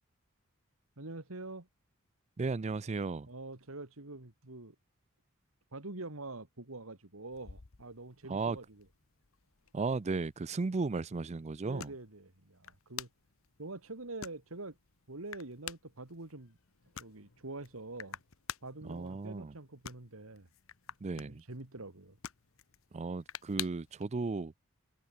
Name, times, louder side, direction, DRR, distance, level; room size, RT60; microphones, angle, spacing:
voice 1, 1.0-1.7 3.3-4.8 5.7-8.8 10.6-10.8 11.6-13.1 13.6-14.8 15.1-16.6 17.0-18.2 18.6-20.5 21.2-22.2, right 2 dB, 90° right, 2.4 m, -45 dB
voice 2, 2.4-3.3 8.3-8.6 9.7-11.9 18.8-19.5 21.0-21.4 22.9-24.5, right 3 dB, 35° right, 0.5 m, -35 dB
sound 1, 7.3-24.0, left 10 dB, 75° left, 1.1 m, -50 dB
head